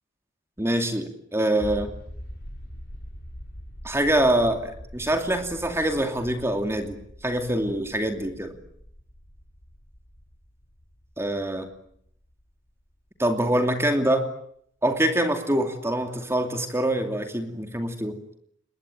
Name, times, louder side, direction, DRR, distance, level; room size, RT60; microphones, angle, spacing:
voice 1, 0.6-1.9 3.8-7.0 7.2-8.5 11.2-11.7 13.2-14.3 14.8-18.2, right 1 dB, 15° right, 5 dB, 2.7 m, -25 dB
sound 1, 1.6-12.9 13.2-13.3, equal, 60° left, 6.5 m, -43 dB
27.5 x 22.0 x 9.2 m, 0.69 s
head